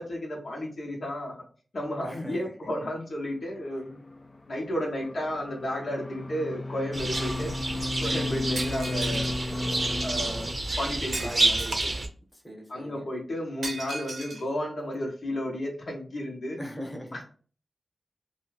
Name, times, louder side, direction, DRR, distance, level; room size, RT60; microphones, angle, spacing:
voice 1, 0.0-1.4 1.7-4.0 4.5-7.5 8.0-9.3 10.0-10.5 10.8-11.6 12.7-16.6, equal, 75° left, -1 dB, 0.8 m, -33 dB
voice 2, 2.0-2.5 11.2-12.0 12.3-13.1 16.6-17.2, equal, 20° left, 1 dB, 1.0 m, -40 dB
sound 1, 3.5-10.5, left 2 dB, 40° left, 0.4 m, -34 dB
sound 2, 6.9-12.1, right 2 dB, 50° right, 0.6 m, -29 dB
Shatter, 8.5-9.4 11.1-12.0 13.6-14.4, right 2 dB, 85° right, 0.7 m, -37 dB
2.6 x 2.2 x 3.2 m, 0.41 s
cardioid pair, 50°, 0 cm